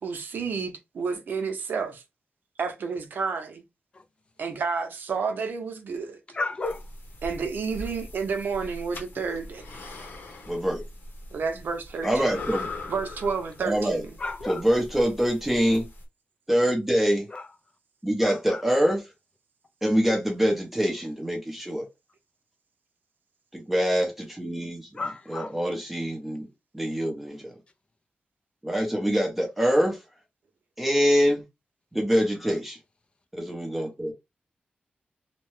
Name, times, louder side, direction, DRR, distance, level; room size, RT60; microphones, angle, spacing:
voice 1, 0.0-2.0 2.6-3.6 4.4-6.2 7.2-9.6 11.3-12.5 12.9-14.2, right 5 dB, 65° right, 0.7 m, -30 dB
voice 2, 6.3-6.9 12.0-12.2 14.2-14.6 17.3-17.5 18.2-18.8 24.9-25.6, left 3 dB, 30° left, 0.4 m, -33 dB
sound 1, 6.6-16.0, left 2 dB, 75° left, 1.0 m, -41 dB
voice 3, 10.5-10.8 12.0-12.7 13.6-14.0 14.5-15.8 16.5-17.3 18.0-19.0 19.8-21.9 23.5-24.9 25.3-26.5 26.7-27.6 28.6-30.0 30.8-31.4 31.9-32.8 33.3-34.1, equal, 5° right, 0.6 m, -24 dB
2.8 x 2.1 x 3.1 m
wide cardioid pair, 175°, 3 cm